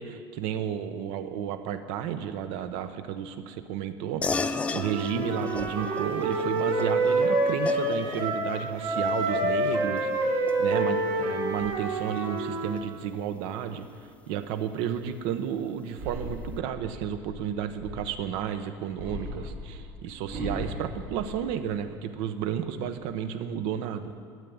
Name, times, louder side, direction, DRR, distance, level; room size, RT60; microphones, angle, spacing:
voice 1, 0.0-13.9 14.3-24.1, right 9 dB, 60° right, 10 dB, 0.9 m, -32 dB
sound 1, 4.2-14.1, left 4 dB, 10° left, 0.3 m, -37 dB
Wind instrument woodwind instrument, 4.8-8.5 8.8-12.7, right 2 dB, 85° right, 2.9 m, -27 dB
sound 2, 15.9-18.3 18.9-22.0 22.4-23.0, equal, 20° right, 2.2 m, -38 dB
12.5 x 8.4 x 9.4 m, 2.1 s
cardioid pair, 170°, 10 cm